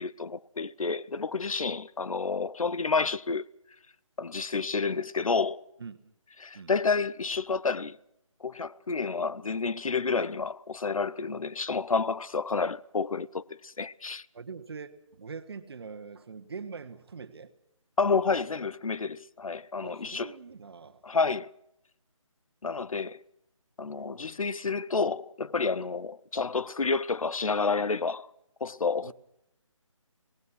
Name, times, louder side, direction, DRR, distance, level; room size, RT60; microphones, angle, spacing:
voice 1, 0.0-3.5 4.2-5.6 6.4-8.0 8.4-14.3 18.0-20.3 21.0-21.5 22.6-23.2 23.8-28.3 28.6-29.1, left 4 dB, 85° left, 0.8 m, -29 dB
voice 2, 5.8-6.1 6.5-6.7 14.3-17.5 19.8-21.0 29.0-29.1, right 5 dB, 50° right, 1.5 m, -43 dB
26.5 x 19.0 x 6.0 m
figure-of-eight pair, 165°, 17 cm